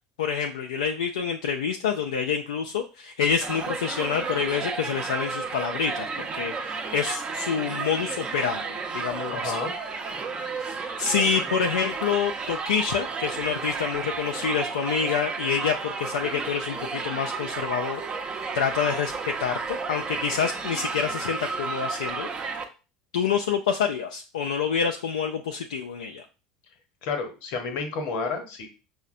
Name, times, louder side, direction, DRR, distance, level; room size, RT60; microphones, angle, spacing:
voice 1, 0.2-9.6 10.6-22.3 23.1-26.2, left 6 dB, 85° left, 2 dB, 0.3 m, -27 dB
Crowd, 3.4-22.6, right 4 dB, 35° right, 0.7 m, -32 dB
voice 2, 9.3-9.7 27.0-28.7, left 4 dB, 65° left, 6 dB, 0.9 m, -30 dB
5.4 x 2.1 x 2.5 m, 0.32 s
hypercardioid pair, 75°, 3 cm